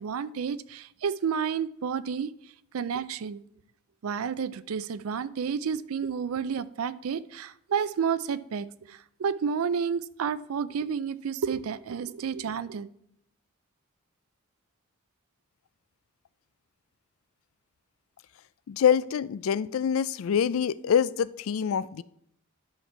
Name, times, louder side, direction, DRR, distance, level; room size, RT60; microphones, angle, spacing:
voice 1, 0.0-2.3 2.7-3.4 4.0-12.9, right 6 dB, 85° right, 0.4 m, -30 dB
voice 2, 18.7-22.0, left 8 dB, 70° left, 0.3 m, -25 dB
10.5 x 5.9 x 4.6 m
head